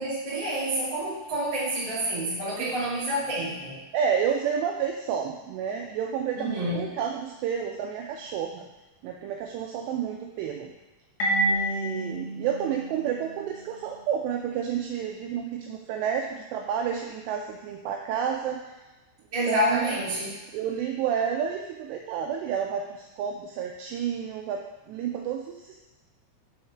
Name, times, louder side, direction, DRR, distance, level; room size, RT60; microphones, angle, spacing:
voice 1, 0.0-3.9 6.3-6.9 19.3-20.3, equal, 30° right, -9 dB, 0.5 m, -28 dB
voice 2, 3.9-8.7 9.0-10.7 11.5-18.6 19.5-20.0 20.5-24.6 24.9-25.8, right 8 dB, 85° right, 2 dB, 2.4 m, -30 dB
Marimba xylophone, 11.2-13.8, right 1 dB, 80° left, 1.5 m, -29 dB
6.5 x 4.3 x 5.7 m, 1.1 s
omnidirectional pair, 5.4 m